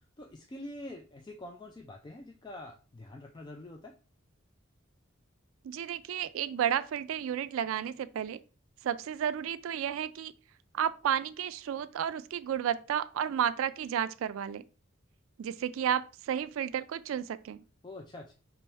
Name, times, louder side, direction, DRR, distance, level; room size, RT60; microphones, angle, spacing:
voice 1, 0.2-4.0 17.8-18.3, left 1 dB, 20° left, 0.3 m, -45 dB
voice 2, 5.6-8.4 8.8-10.3 10.7-14.6 15.4-17.6, right 9 dB, 80° right, 0.3 m, -32 dB
3.4 x 3.0 x 4.4 m
head